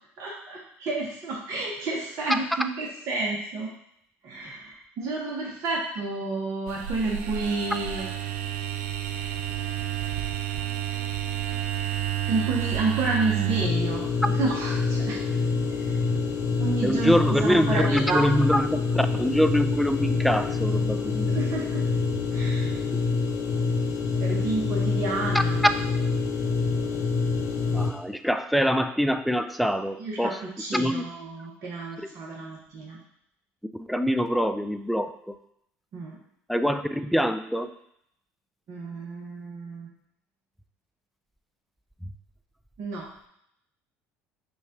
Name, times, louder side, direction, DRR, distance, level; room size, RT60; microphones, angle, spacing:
voice 1, 0.2-3.7 4.2-8.1 12.3-15.2 15.8-16.0 16.6-18.2 21.3-21.8 22.3-22.8 24.2-25.6 30.0-33.0 35.9-36.2 38.7-39.9 42.8-43.0, right 3 dB, 55° right, -3 dB, 1.0 m, -30 dB
sound 1, 6.7-13.7, right 12 dB, 80° right, 0.3 m, -30 dB
sound 2, 13.6-27.9, left 4 dB, 55° left, 0.7 m, -26 dB
voice 2, 16.8-21.4 25.3-25.4 27.7-30.4 30.7-31.0 33.7-35.4 36.5-37.7, equal, ahead, 10 dB, 0.3 m, -25 dB
5.2 x 2.4 x 3.5 m, 0.73 s
hypercardioid pair, 70°, 7 cm